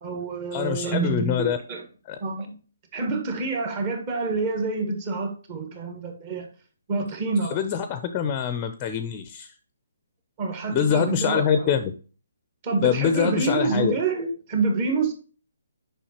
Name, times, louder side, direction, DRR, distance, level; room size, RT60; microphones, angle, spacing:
voice 1, 0.0-1.8 2.2-2.6 2.9-6.5 6.9-7.6 10.4-11.7 12.6-15.1, right 3 dB, 30° right, 4 dB, 1.4 m, -27 dB
voice 2, 0.5-1.6 2.1-2.2 7.5-9.5 10.7-11.9 12.8-13.9, left 8 dB, 25° left, 10 dB, 0.5 m, -24 dB
7.0 x 5.6 x 2.8 m, 0.37 s
hypercardioid pair, 155°, 0 cm